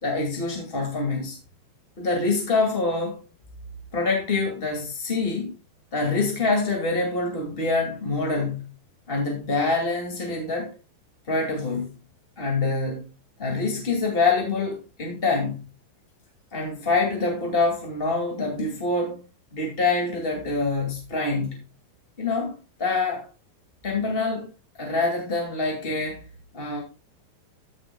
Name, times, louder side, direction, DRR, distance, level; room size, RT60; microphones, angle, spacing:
voice 1, 0.0-1.4 2.0-3.2 3.9-5.5 5.9-8.6 9.1-10.7 11.3-11.9 12.4-13.0 13.4-15.6 16.5-19.2 19.5-21.5 22.2-23.2 23.8-24.5 24.8-26.2 26.5-26.8, left 3 dB, 25° left, 1.2 m, -25 dB
14.5 x 7.1 x 2.3 m
omnidirectional pair, 5.0 m